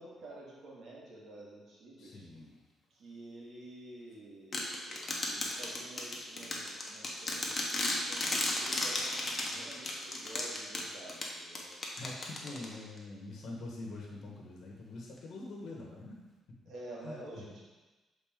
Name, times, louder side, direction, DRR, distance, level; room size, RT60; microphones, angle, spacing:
voice 1, 0.0-2.2 2.9-11.7 12.5-12.6 16.7-17.6, right 2 dB, 65° right, -5 dB, 2.1 m, -50 dB
voice 2, 2.0-2.6 11.9-16.1 17.0-17.2, left 2 dB, 65° left, -2 dB, 1.3 m, -44 dB
sound 1, 4.5-13.0, left 2 dB, 35° left, 1.2 m, -35 dB
7.2 x 4.0 x 3.7 m, 1.2 s
cardioid pair, 90°, 0 cm